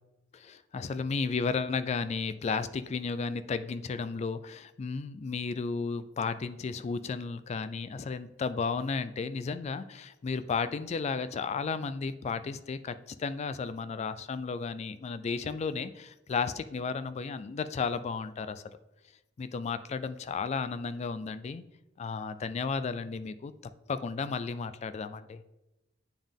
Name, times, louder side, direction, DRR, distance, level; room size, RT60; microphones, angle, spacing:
voice 1, 0.3-18.6 19.4-21.6 22.0-23.5 23.9-25.4, left 5 dB, 35° left, 13 dB, 0.3 m, -33 dB
9.3 x 3.5 x 3.6 m, 0.97 s
head